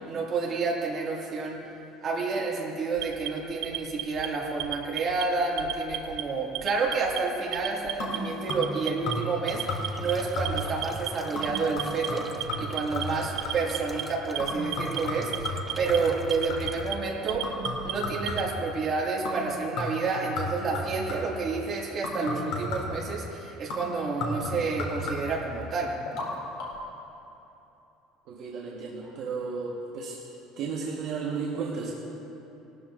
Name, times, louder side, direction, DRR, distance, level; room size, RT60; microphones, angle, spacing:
voice 1, 0.1-1.6 2.0-17.5 17.8-25.9, right 4 dB, 25° right, -3 dB, 1.9 m, -29 dB
Alarm, 3.0-4.3 4.6-5.2 5.6-6.2 6.5-7.2 7.5-8.2 8.5-9.1 9.5-10.1 10.4-11.1 11.4-12.1 12.4-13.0 13.4-14.0 14.3-15.0 15.3-16.0 16.3-16.9 17.3-18.5, right 15 dB, 70° right, 0.6 m, -34 dB
sound 1, 8.0-8.8 9.1-9.4 9.7-10.1 10.4-10.8 11.3-13.8 14.4-16.9 17.4-18.7 19.2-19.5 19.8-21.4 22.0-23.1 23.7-25.5 26.0-26.3 26.6-26.7, left 1 dB, 55° left, 2.8 m, -34 dB
sound 2, 9.4-17.0, right 2 dB, 10° right, 0.4 m, -43 dB
voice 2, 28.3-30.2 30.6-31.9, right 5 dB, 45° right, -4 dB, 1.1 m, -33 dB
19.0 x 13.0 x 2.5 m, 3.0 s
cardioid pair, 180°, 0 cm